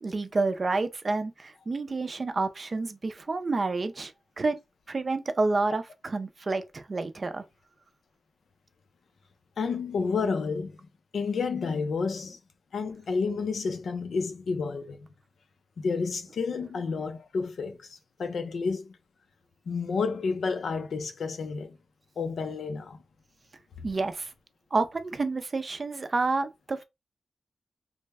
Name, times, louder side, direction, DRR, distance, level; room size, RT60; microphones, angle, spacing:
voice 1, 0.0-4.6 4.9-7.4 23.8-24.3 24.7-26.8, right 3 dB, 35° right, 0.4 m, -29 dB
voice 2, 9.6-10.8 11.1-12.4 12.7-15.1 15.8-19.0 19.7-21.8 22.2-23.0, left 4 dB, 85° left, 0.5 m, -30 dB
3.3 x 2.1 x 3.4 m
wide cardioid pair, 170°, 0 cm